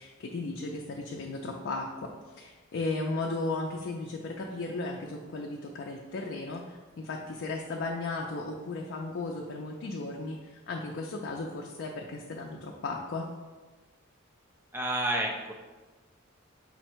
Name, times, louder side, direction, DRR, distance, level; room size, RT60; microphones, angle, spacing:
voice 1, 0.0-2.1 2.4-13.3, left 3 dB, 55° left, 0 dB, 0.4 m, -35 dB
voice 2, 14.7-15.5, right 1 dB, 10° right, 0 dB, 0.4 m, -29 dB
5.5 x 2.1 x 4.4 m, 1.3 s
head